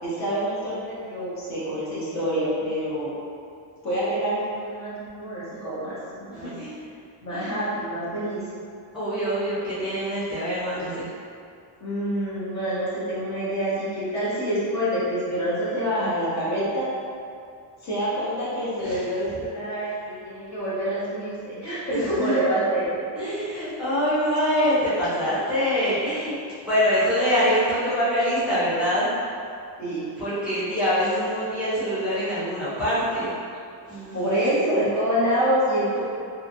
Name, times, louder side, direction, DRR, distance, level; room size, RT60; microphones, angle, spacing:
voice 1, 0.0-3.1 3.8-6.5 7.2-8.4 11.8-16.8 17.8-20.0 20.2-22.9 29.8-30.0 34.1-36.0, right 1 dB, 35° left, -10 dB, 0.8 m, -26 dB
voice 2, 6.3-6.7 7.3-7.5 8.9-11.1 18.8-19.1 21.9-22.4 23.2-26.4 26.6-29.1 30.2-33.3 33.9-34.3, equal, ahead, -15 dB, 0.6 m, -24 dB
2.8 x 2.6 x 2.5 m, 2.4 s
cardioid pair, 170°, 47 cm